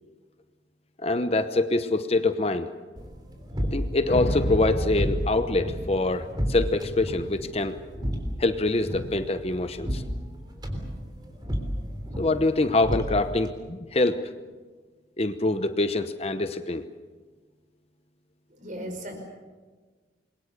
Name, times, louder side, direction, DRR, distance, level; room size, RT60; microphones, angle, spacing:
voice 1, 1.0-2.7 3.7-8.1 8.4-10.0 12.2-14.3 15.2-16.8, left 2 dB, 30° left, 10 dB, 0.9 m, -25 dB
sound 1, 3.0-13.5, equal, 20° right, 3.5 m, -33 dB
sound 2, 4.1-6.6, equal, 50° left, 2.8 m, -30 dB
voice 2, 18.5-19.1, right 1 dB, 40° right, 4 dB, 5.4 m, -36 dB
28.0 x 22.5 x 6.7 m, 1.4 s
head